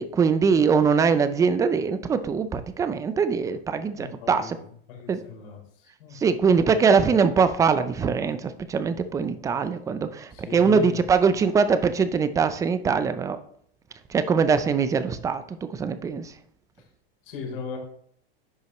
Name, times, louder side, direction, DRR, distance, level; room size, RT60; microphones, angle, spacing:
voice 1, 0.0-4.6 5.1-5.2 6.1-13.4 14.1-16.3, right 5 dB, 10° right, 12 dB, 0.4 m, -22 dB
voice 2, 3.9-4.6 4.9-6.2 10.3-11.0 16.8-16.9 17.2-17.8, left 5 dB, 65° left, -1 dB, 3.7 m, -38 dB
10.5 x 5.6 x 3.0 m, 0.64 s
supercardioid pair, 135°, 30 cm